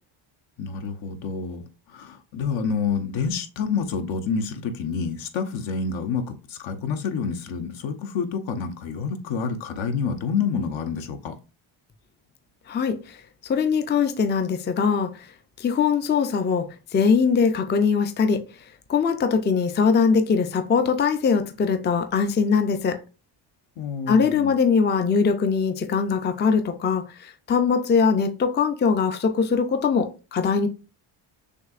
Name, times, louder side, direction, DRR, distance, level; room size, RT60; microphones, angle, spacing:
voice 1, 0.6-11.3 23.8-24.5, left 5 dB, 65° left, 1.0 m, -28 dB
voice 2, 12.7-15.3 15.6-16.7 16.9-18.4 18.9-23.0 24.1-30.7, left 5 dB, 20° left, 0.4 m, -22 dB
6.5 x 2.7 x 2.4 m
cardioid pair, 105°, 49 cm